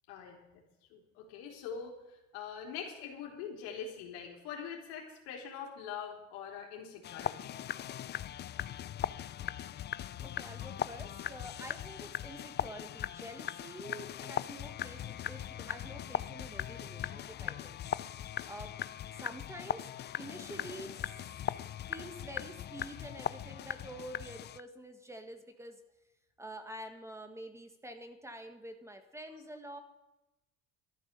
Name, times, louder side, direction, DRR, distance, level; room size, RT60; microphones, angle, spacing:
voice 1, 0.1-0.6 0.9-7.5, left 7 dB, 90° left, 0 dB, 3.5 m, -43 dB
sound 1, 7.0-24.6, left 11 dB, 35° left, 0.5 m, -39 dB
voice 2, 10.2-17.8 18.1-18.7 19.1-19.9 20.2-21.3 21.9-25.8 26.4-29.8, right 1 dB, 10° right, 7 dB, 1.5 m, -47 dB
13.0 x 11.0 x 6.8 m, 0.99 s
supercardioid pair, 105°, 30 cm